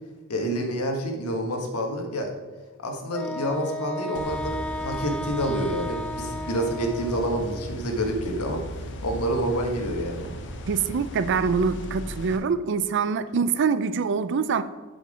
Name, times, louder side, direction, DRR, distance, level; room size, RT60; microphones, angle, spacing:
voice 1, 0.3-2.3 2.8-10.3, equal, 75° left, 3 dB, 1.6 m, -28 dB
Wind instrument woodwind instrument, 3.1-7.8, left 1 dB, 5° left, 0.4 m, -34 dB
sound 1, 4.1-12.4, equal, 55° left, 1.0 m, -37 dB
voice 2, 10.7-14.6, right 5 dB, 55° right, 13 dB, 0.5 m, -24 dB
7.9 x 5.6 x 5.0 m, 1.3 s
head